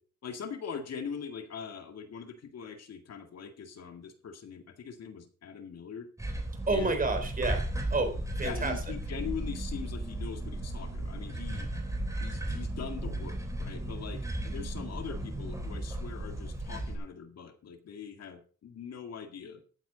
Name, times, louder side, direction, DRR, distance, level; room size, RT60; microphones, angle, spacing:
voice 1, 0.2-6.1 6.7-7.0 8.4-11.7 12.2-19.6, left 6 dB, 55° left, 6 dB, 2.0 m, -42 dB
sound 1, 6.2-17.0, right 1 dB, 10° right, 3.7 m, -35 dB
voice 2, 6.7-8.8, right 3 dB, 30° right, 6 dB, 3.8 m, -30 dB
14.5 x 9.1 x 3.9 m, 0.39 s
cardioid pair, 90°, 30 cm